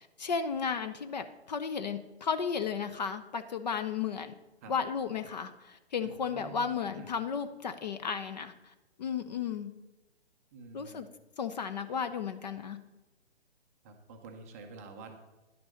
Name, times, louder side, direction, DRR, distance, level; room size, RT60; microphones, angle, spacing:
voice 1, 0.0-4.3 4.7-8.7 9.0-9.7 10.7-11.1 11.4-12.8, left 6 dB, 40° left, 10 dB, 0.5 m, -34 dB
voice 2, 6.0-6.7 7.0-7.1 10.5-11.0 13.8-15.2, right 4 dB, 15° right, 3 dB, 0.5 m, -48 dB
10.5 x 6.0 x 6.3 m, 1.1 s
figure-of-eight pair, 140°, 33 cm